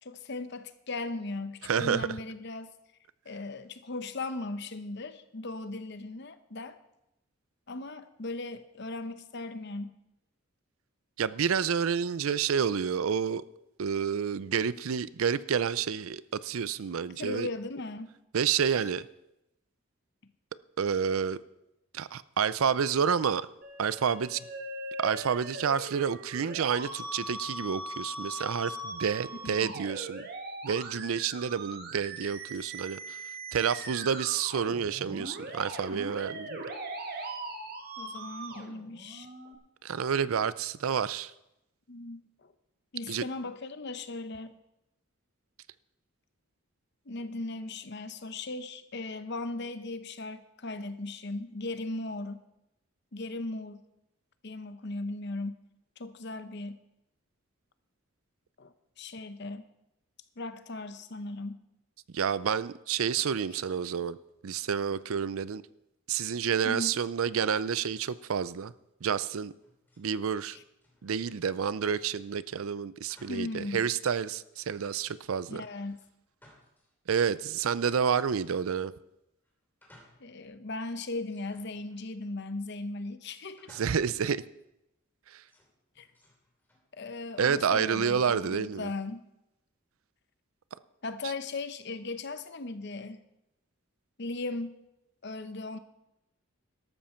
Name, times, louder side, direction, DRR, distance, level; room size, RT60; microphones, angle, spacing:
voice 1, 0.0-2.7 3.2-6.8 7.7-9.9 17.2-18.2 29.4-29.7 38.0-39.3 41.9-42.5 42.9-44.6 47.1-52.4 53.1-53.8 54.4-55.6 56.0-56.8 58.6-59.7 60.4-61.6 63.5-63.6 66.6-67.0 70.5-70.6 73.3-73.9 75.5-76.0 80.2-83.7 86.0-86.1 87.0-89.3 91.0-93.2 94.2-94.8 95.2-95.8, left 2 dB, 50° left, 0.8 m, -38 dB
voice 2, 1.6-2.1 11.2-13.4 13.8-17.5 18.3-19.0 20.8-21.4 21.9-23.5 23.8-24.4 25.0-30.3 30.6-33.2 33.5-36.6 39.8-41.3 43.1-43.2 62.1-64.2 64.4-65.6 66.1-68.7 69.0-69.5 70.0-70.6 71.0-75.6 77.1-78.9 83.7-84.4 85.3-85.4 87.4-88.9, right 7 dB, 75° right, 0.5 m, -29 dB
Musical instrument, 23.6-39.6, right 2 dB, 45° right, 1.6 m, -40 dB
sound 1, 69.5-70.1 70.4-71.4 73.1-73.6 74.0-74.1 74.5-75.2 75.9-76.9 77.2-77.3 78.2-78.8 79.4-80.4 80.7-80.8 81.2-82.3 83.6-84.3 85.4-86.9 87.7-88.4, left 1 dB, 10° left, 2.8 m, -60 dB
13.0 x 12.5 x 4.4 m
head